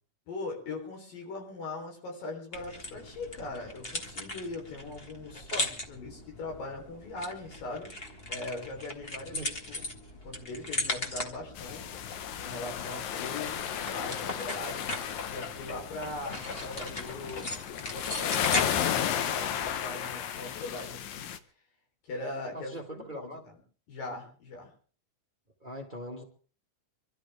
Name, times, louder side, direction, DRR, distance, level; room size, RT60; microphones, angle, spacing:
voice 1, 0.3-7.9 8.3-9.9 10.2-17.5 17.9-21.3 22.0-23.5 23.9-24.7, left 2 dB, 85° left, 1 dB, 5.4 m, -40 dB
sound 1, 2.5-19.9, left 1 dB, 35° left, 1.0 m, -39 dB
voice 2, 5.3-5.7 9.3-9.5 22.5-23.4 25.6-26.2, equal, 80° right, 1 dB, 0.4 m, -41 dB
sound 2, 11.6-21.4, left 9 dB, 70° left, 2.0 m, -34 dB
sound 3, 14.3-20.9, left 5 dB, 55° left, 2.6 m, -46 dB
25.5 x 13.0 x 3.5 m, 0.40 s
omnidirectional pair, 3.8 m